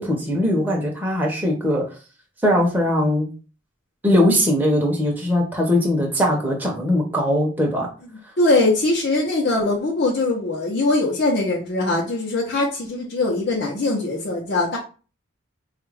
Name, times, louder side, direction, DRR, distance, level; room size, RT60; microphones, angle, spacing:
voice 1, 0.0-1.8 2.4-3.3 4.0-7.9, left 1 dB, 10° right, -2 dB, 0.7 m, -20 dB
voice 2, 8.4-14.8, left 2 dB, 55° left, -4 dB, 0.8 m, -21 dB
4.4 x 2.4 x 3.2 m, 0.36 s
head